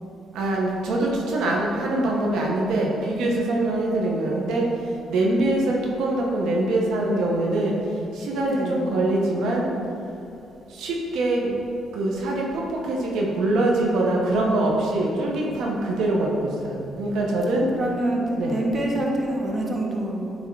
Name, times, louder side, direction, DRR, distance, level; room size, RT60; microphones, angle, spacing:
voice 1, 0.3-4.6 5.1-7.7 8.2-9.7 10.8-11.5 11.9-17.7 18.4-18.6, right 2 dB, 80° right, -2 dB, 1.1 m, -23 dB
voice 2, 8.5-8.8 17.7-20.4, right 1 dB, 40° right, -1 dB, 1.2 m, -26 dB
9.8 x 3.7 x 4.7 m, 2.8 s
cardioid pair, 90°, 0 cm